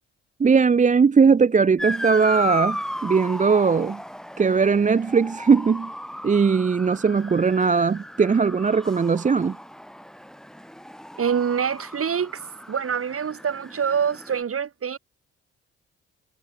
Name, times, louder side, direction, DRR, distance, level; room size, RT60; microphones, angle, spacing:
voice 1, 0.4-4.0 4.4-5.9 6.2-9.6, right 5 dB, 25° right, 0.6 m, -19 dB
Motor vehicle (road) / Siren, 1.8-14.4, equal, ahead, 2.8 m, -35 dB
voice 2, 11.2-12.4 12.7-15.0, right 7 dB, 45° right, 2.0 m, -25 dB
hypercardioid pair, 50°, 31 cm